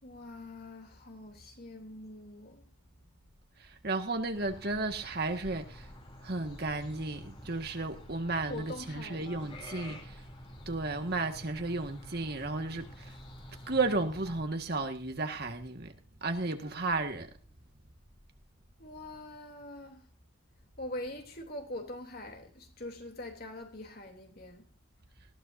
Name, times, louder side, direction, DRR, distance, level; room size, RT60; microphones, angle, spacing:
voice 1, 0.0-2.7 8.5-9.6 16.2-17.0 18.8-20.1 20.8-24.7, left 1 dB, 45° left, 3.1 m, -44 dB
voice 2, 3.6-5.9 6.2-10.2 10.6-13.1 13.7-15.9 16.2-17.3, right 3 dB, 50° right, 1.7 m, -33 dB
sound 1, 4.3-14.4, left 1 dB, 25° left, 3.1 m, -49 dB
19.5 x 16.0 x 2.7 m
head